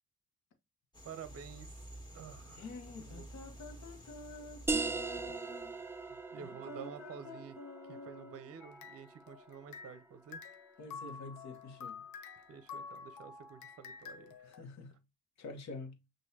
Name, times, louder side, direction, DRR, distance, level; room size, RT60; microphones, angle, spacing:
sound 1, 0.9-6.2, right 1 dB, 15° left, 1.8 m, -52 dB
voice 1, 1.0-1.8 2.1-2.7 3.1-3.3 4.9-5.4 6.1-7.6 7.9-10.4 12.5-14.6, right 7 dB, 50° right, 0.7 m, -50 dB
voice 2, 2.5-5.8 6.4-8.5 10.8-12.1 14.4-15.0 15.4-16.0, left 3 dB, 65° left, 1.2 m, -48 dB
sound 2, 4.7-10.0, right 4 dB, 10° right, 0.3 m, -40 dB
sound 3, 8.6-10.1 10.3-14.6, left 5 dB, 80° left, 0.8 m, -49 dB
6.2 x 2.6 x 2.8 m
cardioid pair, 90°, 30 cm